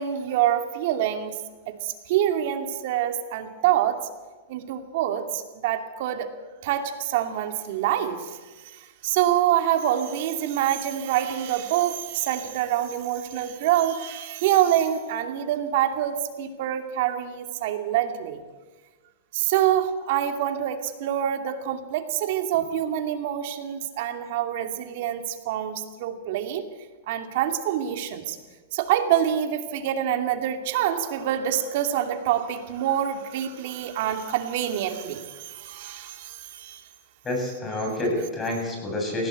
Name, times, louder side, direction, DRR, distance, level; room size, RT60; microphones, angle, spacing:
voice 1, 0.0-1.4 1.7-4.0 4.5-6.3 6.6-8.4 8.6-18.4 19.3-26.7 27.1-28.4 28.7-36.8, right 11 dB, 55° right, 7 dB, 2.6 m, -26 dB
voice 2, 37.2-39.3, left 1 dB, 15° left, 0 dB, 7.8 m, -28 dB
19.5 x 17.0 x 8.3 m, 1.3 s
hypercardioid pair, 130°, 0 cm